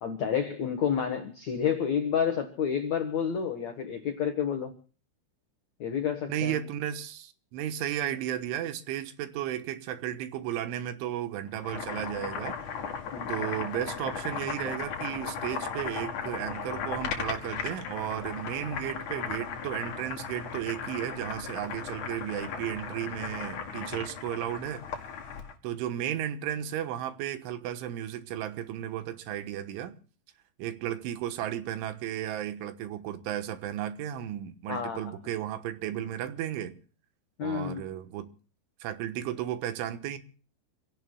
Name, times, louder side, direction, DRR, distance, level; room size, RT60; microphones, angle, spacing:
voice 1, 0.0-4.7 5.8-6.6 13.1-13.5 34.7-35.0 37.4-37.8, left 7 dB, 75° left, 1.6 m, -30 dB
voice 2, 6.3-12.7 13.3-24.8 25.6-30.0 30.6-36.8 37.4-38.3 38.8-40.2, right 11 dB, 80° right, 3.6 m, -34 dB
Boiling, 11.5-25.5, left 6 dB, 50° left, 2.8 m, -36 dB
28.0 x 17.0 x 2.3 m
omnidirectional pair, 5.5 m